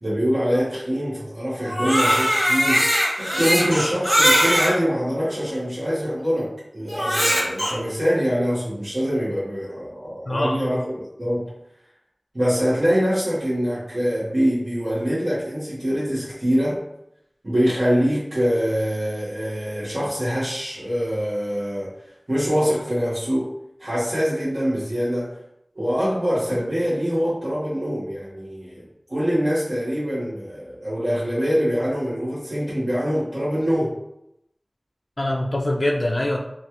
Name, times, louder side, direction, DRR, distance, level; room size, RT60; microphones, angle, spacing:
voice 1, 0.0-11.5 12.3-16.8 17.4-21.9 22.3-23.5 23.8-25.3 25.7-34.0, equal, 60° right, -11 dB, 1.1 m, -24 dB
Crying sobbing, 1.6-4.7 5.5-5.6 6.9-7.7, equal, 10° right, 1.1 m, -20 dB
voice 2, 10.3-10.7 35.2-36.4, left 1 dB, 55° left, 0 dB, 0.4 m, -23 dB
3.0 x 2.3 x 2.9 m, 0.80 s
wide cardioid pair, 50°, 0 cm